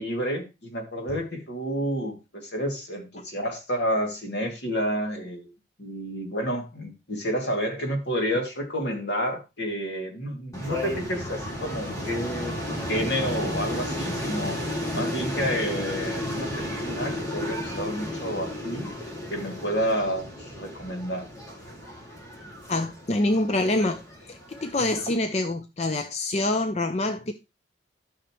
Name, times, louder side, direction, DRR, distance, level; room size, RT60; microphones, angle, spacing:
voice 1, 0.0-5.5 5.8-12.6 12.9-14.6 14.9-18.9 19.3-21.3, equal, 65° left, 2.6 m, -30 dB
sound 1, 10.5-25.2, left 1 dB, 15° left, 2.3 m, -33 dB
voice 2, 22.7-27.3, left 2 dB, 35° left, 0.5 m, -26 dB
13.5 x 6.3 x 3.1 m
head